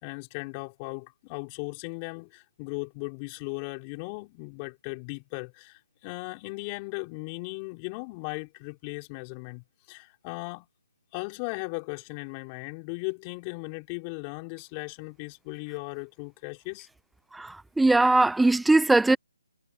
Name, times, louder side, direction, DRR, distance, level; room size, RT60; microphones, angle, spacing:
voice 1, 0.0-10.7 11.1-16.9, left 30 dB, 25° left, 4.6 m, -37 dB
voice 2, 17.3-19.2, right 2 dB, 5° right, 0.3 m, -20 dB
figure-of-eight pair, 150°, 0 cm